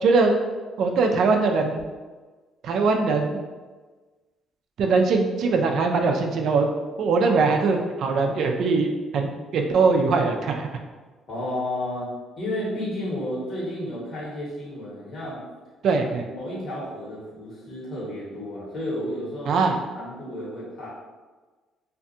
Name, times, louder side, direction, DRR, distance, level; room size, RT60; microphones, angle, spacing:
voice 1, 0.0-0.4 0.8-1.8 2.6-3.4 4.8-6.7 7.0-10.7 15.8-16.2 19.5-19.8, right 4 dB, 65° right, 3 dB, 0.3 m, -21 dB
voice 2, 11.3-12.1 12.4-15.4 16.2-19.6 19.9-20.9, left 1 dB, 50° left, -7 dB, 1.3 m, -32 dB
2.5 x 2.3 x 2.6 m, 1.3 s
supercardioid pair, 75°, 0 cm